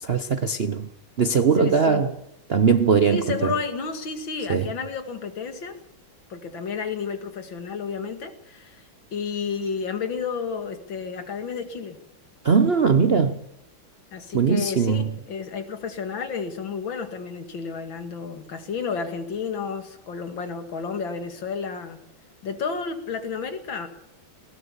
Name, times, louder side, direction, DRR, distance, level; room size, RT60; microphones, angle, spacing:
voice 1, 0.1-0.9 1.2-2.1 2.5-3.5 4.5-4.7 12.4-13.4 14.3-15.0, right 5 dB, 50° right, 0.7 m, -20 dB
voice 2, 1.6-2.1 3.1-5.8 6.3-12.0 14.1-22.0 22.4-23.9, left 5 dB, 70° left, 2.8 m, -31 dB
19.5 x 19.0 x 7.1 m
omnidirectional pair, 2.2 m